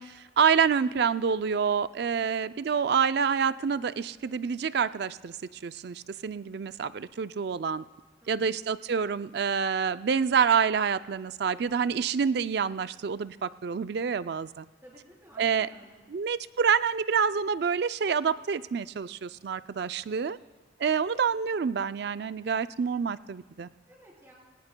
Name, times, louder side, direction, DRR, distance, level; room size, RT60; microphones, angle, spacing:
voice 1, 0.0-5.4 5.6-7.8 8.3-14.6 15.4-15.7 16.1-20.4 20.8-23.7, right 6 dB, 55° right, 14 dB, 0.3 m, -27 dB
voice 2, 8.2-8.6 14.8-16.0 23.9-24.3, equal, 15° right, -4 dB, 3.7 m, -54 dB
22.0 x 18.5 x 2.2 m, 1.4 s
head